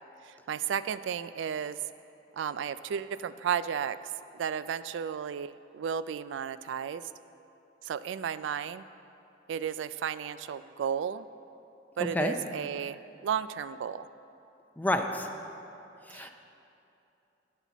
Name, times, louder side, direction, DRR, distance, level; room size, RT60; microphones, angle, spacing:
voice 1, 0.2-1.8 2.3-4.1 4.4-7.1 7.8-8.8 9.5-11.3 12.0-14.1 16.1-16.3, right 8 dB, 90° right, 15 dB, 0.3 m, -33 dB
voice 2, 12.0-12.4 14.8-15.3 16.1-16.3, left 1 dB, 10° left, 5 dB, 0.5 m, -29 dB
17.0 x 5.7 x 4.1 m, 2.8 s
head